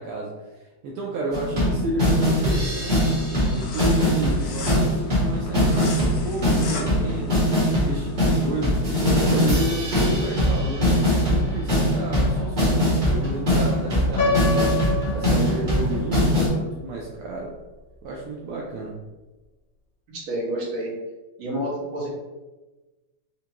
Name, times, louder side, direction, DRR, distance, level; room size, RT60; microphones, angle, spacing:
voice 1, 0.0-3.2 3.5-10.9 11.3-17.6 18.0-19.0, right 2 dB, 85° right, -3 dB, 1.5 m, -32 dB
sound 1, 1.3-16.5, equal, 30° right, 1.0 m, -22 dB
sound 2, 2.2-8.7, left 4 dB, 80° left, 0.8 m, -39 dB
Piano, 14.2-16.1, left 3 dB, 50° left, 1.1 m, -26 dB
voice 2, 20.1-20.9 21.4-22.1, right 1 dB, 70° right, -5 dB, 2.0 m, -29 dB
4.9 x 2.2 x 2.8 m, 1.2 s
omnidirectional pair, 2.3 m